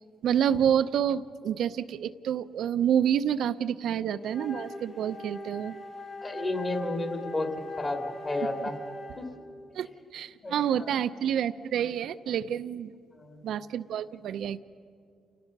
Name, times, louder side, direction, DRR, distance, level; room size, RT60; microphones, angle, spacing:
voice 1, 0.2-5.8 9.8-12.9 13.4-14.6, right 9 dB, 75° right, 13 dB, 0.6 m, -28 dB
Wind instrument woodwind instrument, 4.2-9.4, left 2 dB, 55° left, 3.2 m, -41 dB
voice 2, 6.2-7.5 7.8-8.8 9.2-9.3 10.4-11.0 13.2-13.6, left 2 dB, 30° left, 3 dB, 2.6 m, -32 dB
29.0 x 17.5 x 5.4 m, 2.4 s
cardioid pair, 90°, 0 cm